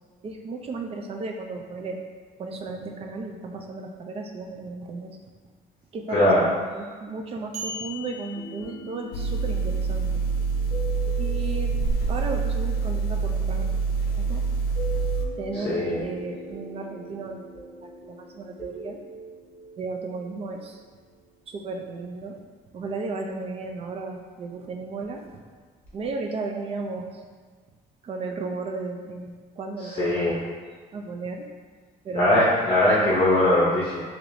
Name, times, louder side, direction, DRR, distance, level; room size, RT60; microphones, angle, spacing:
voice 1, 0.2-2.0 2.4-5.2 5.9-10.2 11.2-11.8 12.1-13.7 14.2-14.4 15.3-17.4 18.0-19.0 19.8-20.8 21.5-22.4 22.7-25.4 25.9-27.2 28.0-30.5 30.9-31.5 32.0-32.5 32.9-33.2, right 3 dB, 35° right, 3 dB, 0.4 m, -34 dB
voice 2, 6.1-6.4 15.6-16.0 30.0-30.3 32.1-34.0, left 1 dB, 35° left, -7 dB, 0.7 m, -20 dB
sound 1, 7.5-9.4, left 1 dB, 80° right, 0.9 m, -38 dB
sound 2, 8.3-21.5 25.8-26.0, equal, 10° left, 1.3 m, -42 dB
sound 3, 9.1-15.3, right 4 dB, 65° left, 0.4 m, -26 dB
4.7 x 2.9 x 2.6 m, 1.5 s
cardioid pair, 145°, 16 cm